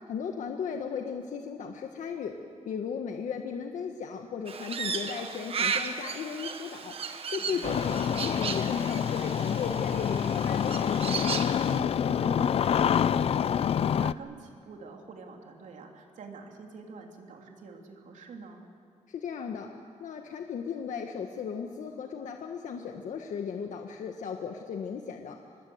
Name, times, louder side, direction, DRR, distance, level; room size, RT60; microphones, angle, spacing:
voice 1, 0.1-2.3 2.6-7.0 7.3-11.1 19.1-19.7 20.0-25.4, left 6 dB, 80° left, 3 dB, 1.5 m, -36 dB
Crow, 4.5-11.8, right 6 dB, 50° right, 1.4 m, -35 dB
voice 2, 7.4-7.8 11.7-18.7, right 4 dB, 80° right, 2 dB, 3.4 m, -46 dB
Engine starting, 7.6-14.1, left 8 dB, 50° left, 0.5 m, -27 dB
25.0 x 20.5 x 8.0 m, 2.5 s
wide cardioid pair, 160°, 13 cm